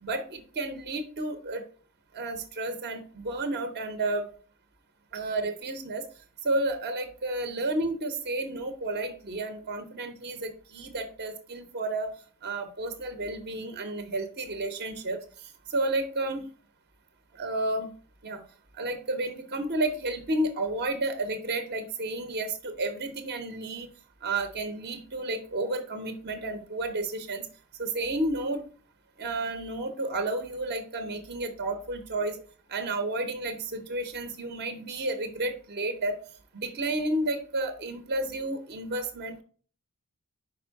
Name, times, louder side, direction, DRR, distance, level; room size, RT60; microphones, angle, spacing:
voice 1, 0.0-1.6 2.1-4.3 5.1-6.0 6.4-12.1 12.4-15.2 15.7-16.4 17.3-17.9 18.2-18.4 18.7-23.9 24.2-27.4 27.8-28.6 29.2-32.4 32.7-36.2 36.5-39.4, right 2 dB, 45° right, 7 dB, 0.6 m, -31 dB
5.1 x 4.9 x 4.5 m, 0.43 s
head